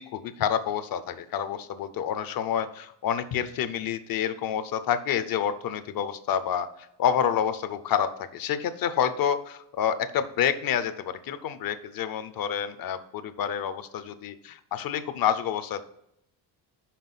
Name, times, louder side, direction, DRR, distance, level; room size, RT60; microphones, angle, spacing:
voice 1, 0.0-6.7 7.0-15.8, left 8 dB, 45° left, 11 dB, 0.5 m, -28 dB
5.8 x 5.3 x 5.4 m, 0.78 s
cardioid pair, 160°, 49 cm